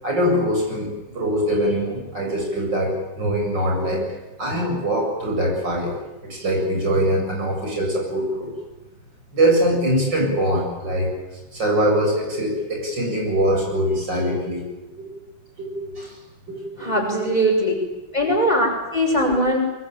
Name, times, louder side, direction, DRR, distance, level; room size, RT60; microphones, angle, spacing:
voice 1, 0.0-4.1 4.4-8.5 9.3-11.1 11.5-14.6 15.0-15.1 15.6-16.1 16.5-17.0 18.2-18.4, equal, 65° right, 0 dB, 8.5 m, -23 dB
voice 2, 16.8-17.7 18.1-19.6, equal, 20° left, 1 dB, 6.4 m, -20 dB
24.0 x 23.5 x 9.0 m, 1.0 s
omnidirectional pair, 2.1 m